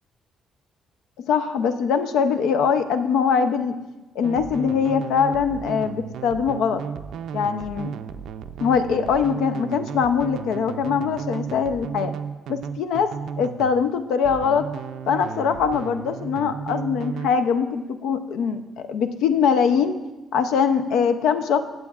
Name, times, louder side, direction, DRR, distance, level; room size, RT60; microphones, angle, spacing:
voice 1, 1.3-3.8 4.2-6.8 7.3-7.9 8.6-12.1 12.5-13.1 13.4-14.7 15.1-20.0 20.3-21.6, left 6 dB, 85° left, 9 dB, 0.5 m, -22 dB
sound 1, 4.2-13.8 14.2-17.3, right 7 dB, 65° right, 0.3 m, -34 dB
15.5 x 7.7 x 2.4 m, 1.1 s
cardioid pair, 175°, 0 cm